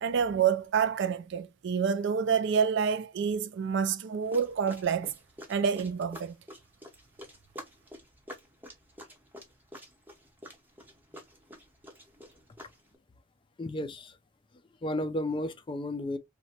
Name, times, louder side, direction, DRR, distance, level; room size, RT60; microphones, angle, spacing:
voice 1, 0.0-5.1 5.5-6.4, right 6 dB, 60° right, 0.4 m, -28 dB
sound 1, 4.2-13.0, equal, 10° right, 0.7 m, -49 dB
voice 2, 13.6-14.2 14.8-16.2, left 1 dB, 25° left, 0.3 m, -33 dB
2.8 x 2.2 x 2.7 m
head